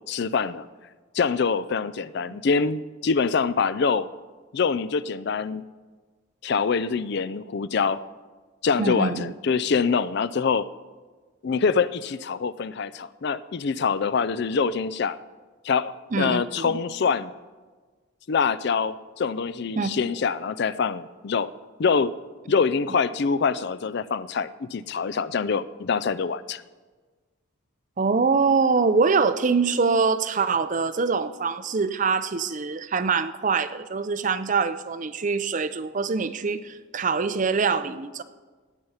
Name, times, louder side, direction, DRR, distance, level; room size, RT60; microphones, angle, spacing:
voice 1, 0.1-0.7 1.1-4.1 4.5-5.6 6.4-8.0 8.6-10.7 11.4-15.2 15.6-17.3 18.3-21.5 21.8-22.1 22.5-26.6, left 5 dB, 55° left, 16 dB, 0.4 m, -25 dB
voice 2, 8.8-9.3 16.1-16.8 19.8-19.9 28.0-38.2, right 4 dB, 35° right, 13 dB, 0.5 m, -24 dB
18.0 x 8.0 x 5.6 m, 1.4 s
head